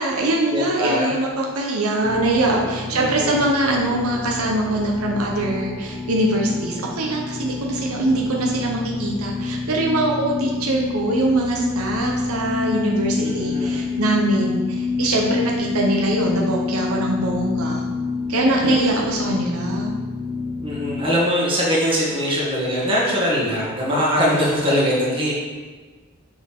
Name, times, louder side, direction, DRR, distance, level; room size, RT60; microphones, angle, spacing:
voice 1, 0.0-17.8 18.3-19.9, right 1 dB, 90° right, -1 dB, 0.9 m, -22 dB
voice 2, 0.5-1.1 2.9-3.5 13.2-13.8 18.6-19.1 20.6-25.3, equal, 25° right, -6 dB, 1.8 m, -22 dB
sound 1, 2.0-21.0, left 4 dB, 20° left, 0.8 m, -28 dB
6.7 x 4.9 x 3.6 m, 1.4 s
head